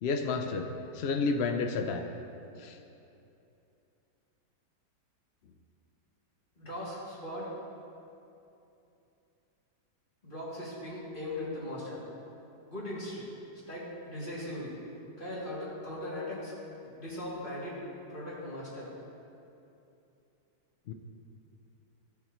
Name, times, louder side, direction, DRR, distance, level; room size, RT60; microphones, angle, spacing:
voice 1, 0.0-0.7 0.9-2.0 2.6-2.8 20.9-21.0, left 4 dB, 90° left, 5 dB, 0.5 m, -30 dB
voice 2, 6.6-7.5 10.2-12.0 12.7-13.2 13.7-14.7 15.2-16.5 17.0-17.8 18.1-18.9, left 1 dB, 30° left, -8 dB, 2.8 m, -39 dB
17.0 x 7.2 x 3.0 m, 2.8 s
omnidirectional pair, 1.8 m